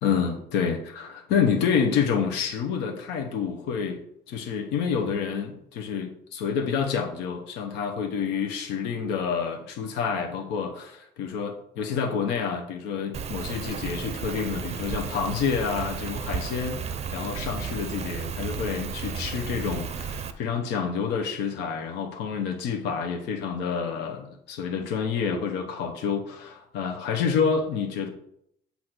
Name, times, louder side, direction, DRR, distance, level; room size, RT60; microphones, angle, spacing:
voice 1, 0.0-4.0 4.3-28.1, left 6 dB, 85° left, 2 dB, 0.9 m, -28 dB
Rain, 13.1-20.3, right 6 dB, 40° right, 0.6 m, -33 dB
7.9 x 2.8 x 5.9 m, 0.73 s
cardioid pair, 110°, 17 cm